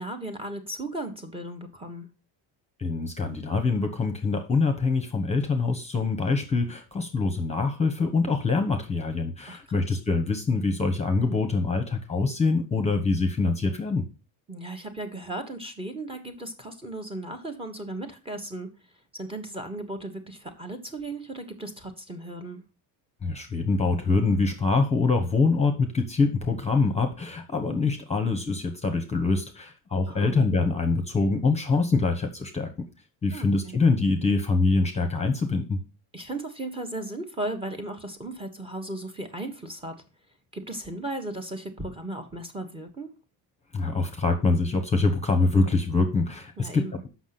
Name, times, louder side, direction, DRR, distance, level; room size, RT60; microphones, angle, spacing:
voice 1, 0.0-2.1 9.5-9.9 14.5-18.7 19.1-22.6 30.1-30.3 33.3-33.8 36.1-40.0 40.5-43.1 46.6-47.0, right 1 dB, 10° right, 7 dB, 1.2 m, -36 dB
voice 2, 2.8-14.0 23.2-32.7 33.2-35.8 43.7-47.1, left 3 dB, 15° left, 6 dB, 1.1 m, -24 dB
7.2 x 6.0 x 5.9 m, 0.32 s
cardioid pair, 135°, 44 cm